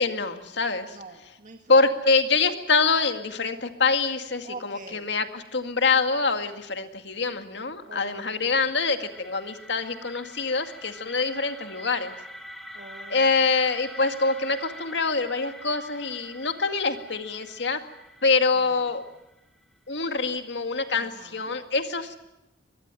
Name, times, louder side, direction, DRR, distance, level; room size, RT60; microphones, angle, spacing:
voice 1, 0.0-1.0 1.7-12.1 13.1-17.8 18.2-19.0 19.9-22.2, left 4 dB, 70° left, 7 dB, 2.1 m, -25 dB
voice 2, 0.9-1.7 4.4-5.1 7.9-8.5 12.7-13.3 18.5-18.9 20.9-21.5, right 3 dB, 45° right, 4 dB, 1.7 m, -45 dB
sound 1, 7.8-19.7, equal, ahead, 2.6 m, -45 dB
24.0 x 21.0 x 9.1 m, 0.91 s
head